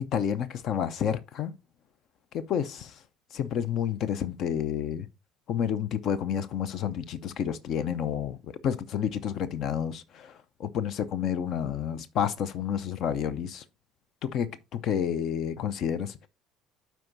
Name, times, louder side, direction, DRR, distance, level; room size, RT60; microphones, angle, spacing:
voice 1, 0.0-1.5 2.3-2.9 3.3-5.1 5.5-8.4 8.6-13.6 14.2-16.3, left 8 dB, 50° left, 0.6 m, -30 dB
12.0 x 4.6 x 2.6 m
figure-of-eight pair, 55°, 0 cm